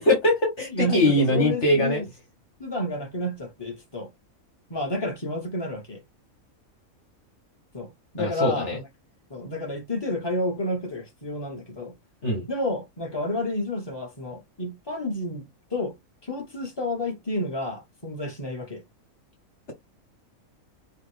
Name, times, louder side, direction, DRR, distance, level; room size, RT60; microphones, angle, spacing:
voice 1, 0.0-2.0 8.2-8.8 12.2-12.4, left 1 dB, 55° left, 1.8 m, -22 dB
voice 2, 0.7-2.1 2.6-4.1 4.7-6.0 7.7-8.8 9.3-11.9 12.5-15.5 15.7-15.9 16.2-18.8, left 1 dB, 15° left, 1.9 m, -30 dB
5.6 x 2.7 x 3.5 m
omnidirectional pair, 1.4 m